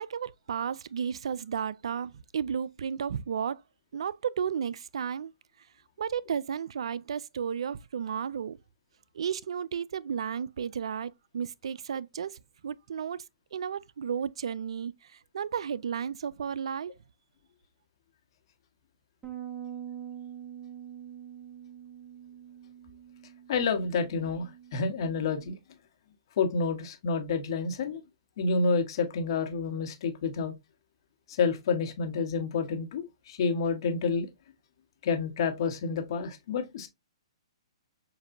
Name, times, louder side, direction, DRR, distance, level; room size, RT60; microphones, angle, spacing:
voice 1, 0.0-3.6 3.9-5.3 6.0-8.6 9.1-13.2 13.5-14.9 15.3-16.9, right 7 dB, 70° right, 0.3 m, -33 dB
Bass guitar, 19.2-25.5, right 10 dB, 10° right, 1.1 m, -45 dB
voice 2, 23.5-25.5 26.4-28.0 28.4-30.5 31.3-34.3 35.0-36.9, left 5 dB, 50° left, 1.3 m, -29 dB
6.9 x 2.6 x 2.7 m
hypercardioid pair, 140°, 3 cm